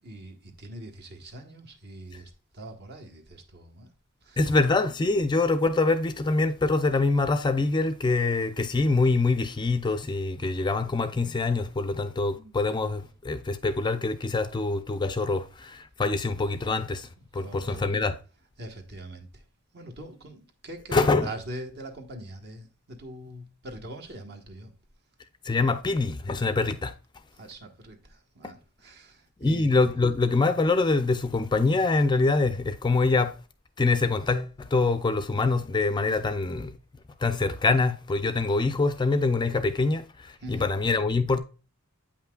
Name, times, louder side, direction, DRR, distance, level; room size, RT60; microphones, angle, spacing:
voice 1, 0.0-3.9 4.2-4.5 12.3-12.7 17.3-17.9 18.6-19.4 19.7-24.7 27.3-29.8 40.4-40.7, right 1 dB, 50° right, 1.2 m, -42 dB
voice 2, 4.4-18.2 20.9-21.3 25.4-26.9 29.4-33.3 33.8-36.8 37.2-41.4, left 3 dB, 20° left, 0.4 m, -25 dB
8.5 x 5.6 x 2.3 m
head